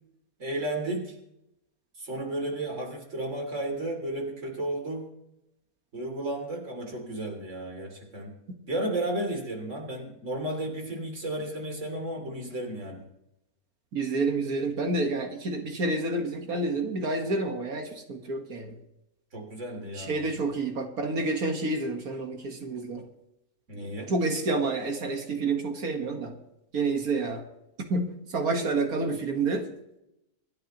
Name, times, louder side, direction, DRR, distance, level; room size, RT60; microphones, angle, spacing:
voice 1, 0.4-1.1 2.0-5.1 5.9-8.3 8.7-13.0 19.3-20.2 23.7-24.1, right 1 dB, 50° right, 1 dB, 3.3 m, -33 dB
voice 2, 13.9-18.8 19.9-23.1 24.1-26.4 26.7-27.4 27.9-29.7, right 3 dB, 65° right, 4 dB, 2.0 m, -29 dB
26.5 x 10.5 x 3.0 m, 0.84 s
omnidirectional pair, 1.7 m